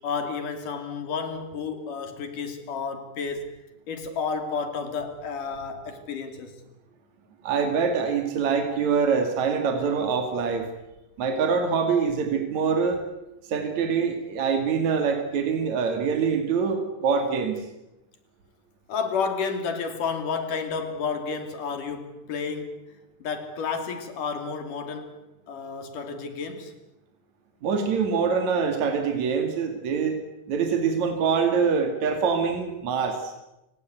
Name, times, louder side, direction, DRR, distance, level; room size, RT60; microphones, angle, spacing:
voice 1, 0.0-3.5 3.9-6.6 18.9-22.8 23.2-25.2 25.5-26.7, left 5 dB, 85° left, 4.3 m, -31 dB
voice 2, 7.4-10.7 11.2-13.0 13.5-17.7 27.6-30.2 30.5-33.3, right 5 dB, 65° right, 3.6 m, -24 dB
28.5 x 17.0 x 9.4 m
omnidirectional pair, 3.6 m